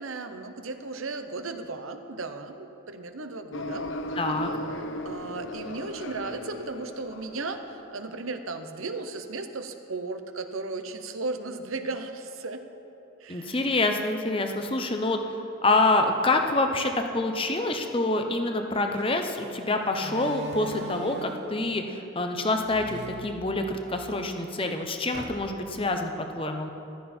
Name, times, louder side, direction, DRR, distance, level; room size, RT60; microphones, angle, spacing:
voice 1, 0.0-3.9 5.0-12.6 13.2-13.6, right 3 dB, 85° right, 7 dB, 0.9 m, -35 dB
sound 1, 3.5-7.9, equal, 65° left, 0.7 m, -36 dB
voice 2, 4.2-4.5 13.3-15.2 15.6-26.7, left 2 dB, 25° left, 5 dB, 0.8 m, -26 dB
Slam, 18.9-19.1 20.0-21.6 22.6-24.0 24.4-24.5 25.1-25.8, equal, 50° right, 1.1 m, -39 dB
15.0 x 12.5 x 4.5 m, 3.0 s
head